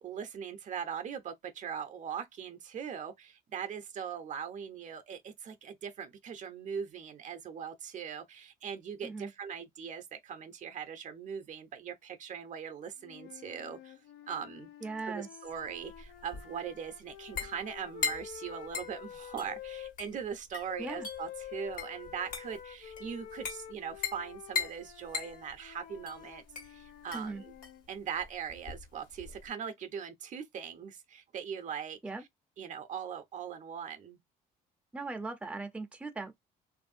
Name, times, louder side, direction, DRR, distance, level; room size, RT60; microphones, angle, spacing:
voice 1, 0.0-14.0 14.3-14.7 15.1-27.5 27.9-32.0 32.6-34.2, right 7 dB, 45° right, 0.6 m, -40 dB
sound 1, 13.0-19.9 20.7-27.8, left 10 dB, 75° left, 0.6 m, -48 dB
voice 2, 14.8-15.3 20.8-21.1 27.1-27.4 32.0-32.2 34.9-36.3, right 3 dB, 5° right, 0.6 m, -39 dB
sound 2, 15.5-29.5, left 6 dB, 55° left, 1.3 m, -41 dB
3.1 x 2.6 x 2.5 m
cardioid pair, 110°, 17 cm